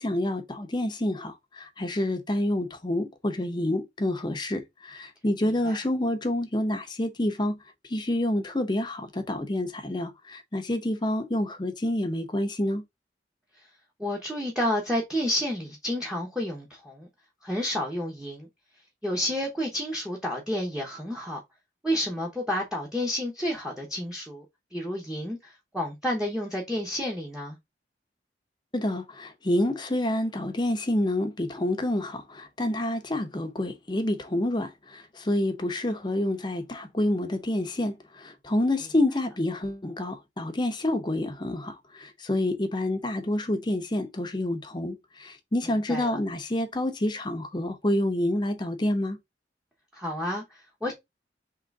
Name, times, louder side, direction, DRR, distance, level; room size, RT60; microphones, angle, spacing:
voice 1, 0.0-7.6 7.9-12.8 28.7-49.2, left 1 dB, 25° left, 0.7 m, -28 dB
voice 2, 14.0-17.1 17.4-18.5 19.0-21.4 21.8-24.4 24.7-27.6 45.9-46.2 49.9-50.9, left 1 dB, 5° right, 1.0 m, -30 dB
3.8 x 3.0 x 4.6 m
head